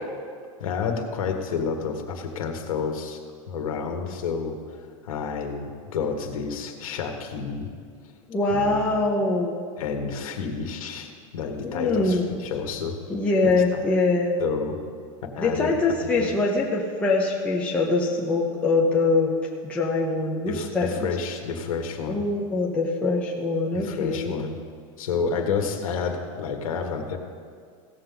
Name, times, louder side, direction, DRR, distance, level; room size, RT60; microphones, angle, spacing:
voice 1, 0.6-3.2 3.5-4.6 5.0-7.7 8.5-9.0 9.8-13.0 13.4-13.8 14.4-14.8 15.3-15.8 16.2-16.3 20.5-22.2 23.7-24.6 25.0-27.2, left 5 dB, 80° left, 3 dB, 1.6 m, -30 dB
voice 2, 8.3-9.5 11.6-12.3 13.1-14.3 15.4-19.3 19.6-21.1 22.1-24.3, left 3 dB, 5° left, -3 dB, 0.7 m, -23 dB
17.0 x 7.0 x 3.9 m, 2.1 s
supercardioid pair, 175°, 18 cm